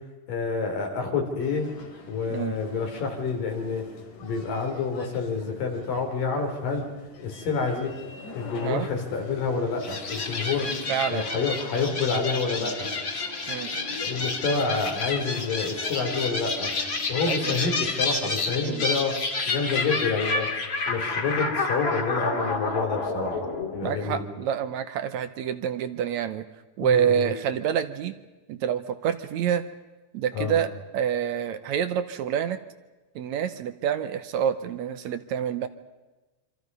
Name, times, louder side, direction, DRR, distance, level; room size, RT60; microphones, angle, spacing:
voice 1, 0.3-1.7 2.1-3.8 4.2-6.8 7.2-7.9 8.4-10.7 11.1-12.9 14.0-16.7 17.1-19.2 19.5-20.5 20.9-23.4 23.7-24.2 26.8-27.3 30.3-30.6, left 4 dB, 85° left, 3 dB, 5.2 m, -28 dB
sound 1, 1.4-18.7, left 3 dB, 70° left, 3.9 m, -44 dB
sound 2, 9.8-24.5, left 3 dB, 40° left, 3.1 m, -30 dB
voice 2, 10.9-11.3 13.5-13.7 17.3-17.6 18.6-18.8 23.8-26.5 26.8-28.1 28.5-29.7 30.1-32.6 33.2-35.7, right 9 dB, 70° right, 10 dB, 2.0 m, -27 dB
26.5 x 26.0 x 5.5 m, 1.1 s
omnidirectional pair, 3.7 m